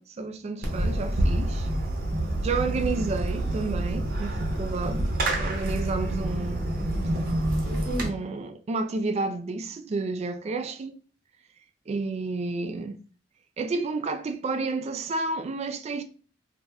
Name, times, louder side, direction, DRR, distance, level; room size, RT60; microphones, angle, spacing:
voice 1, 0.0-1.7 2.4-5.1 5.4-6.7 8.0-11.0 11.9-13.0 13.6-16.0, right 3 dB, 35° right, 0.3 m, -31 dB
Fireworks, 0.6-8.1, right 1 dB, 55° right, 0.7 m, -27 dB
2.4 x 2.1 x 3.4 m
head